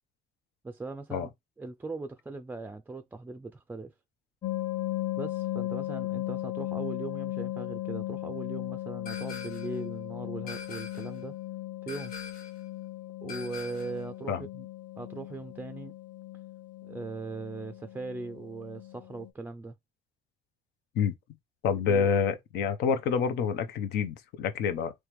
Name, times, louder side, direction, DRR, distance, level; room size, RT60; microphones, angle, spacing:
voice 1, 0.6-1.3 1.6-3.9 5.2-11.4 11.8-12.1 13.2-14.7 15.0-15.9 16.8-19.8 21.9-22.1, right 3 dB, 10° right, 0.4 m, -39 dB
sound 1, 4.4-19.3, left 16 dB, 30° left, 0.7 m, -37 dB
sound 2, 9.1-9.8 10.5-11.2 11.9-12.6 13.3-14.0, left 4 dB, 60° left, 1.3 m, -43 dB
voice 2, 21.6-24.9, left 6 dB, 80° left, 0.8 m, -27 dB
3.4 x 3.2 x 3.0 m
cardioid pair, 110°, 17 cm